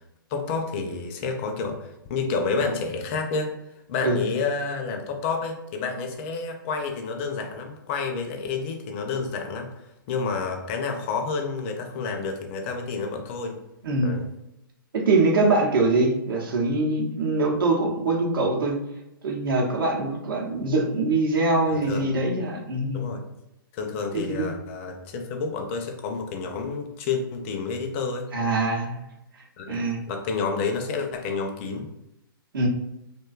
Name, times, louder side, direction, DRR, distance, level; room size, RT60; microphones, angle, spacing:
voice 1, 0.3-3.5 3.9-9.7 10.1-13.6 14.0-14.3 21.7-22.1 22.9-23.2 23.7-28.3 29.6-29.8 30.1-31.9, left 4 dB, 35° left, 3 dB, 0.4 m, -29 dB
voice 2, 14.9-18.8 19.2-23.0 24.1-24.5 28.3-29.0 29.7-30.0 32.5-32.7, right 2 dB, 70° right, -1 dB, 0.7 m, -23 dB
2.5 x 2.2 x 2.3 m, 0.87 s
hypercardioid pair, 135°, 12 cm